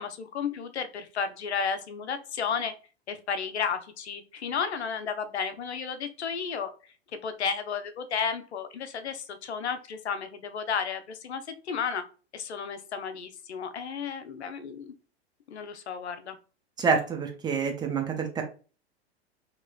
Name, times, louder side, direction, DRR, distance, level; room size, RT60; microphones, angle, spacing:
voice 1, 0.0-2.7 3.1-6.7 7.2-12.0 12.3-14.9 15.5-16.4, left 6 dB, 80° left, 9 dB, 0.6 m, -33 dB
voice 2, 16.8-18.4, right 5 dB, 15° right, 3 dB, 0.4 m, -27 dB
3.0 x 2.8 x 2.3 m, 0.36 s
hypercardioid pair, 105°, 32 cm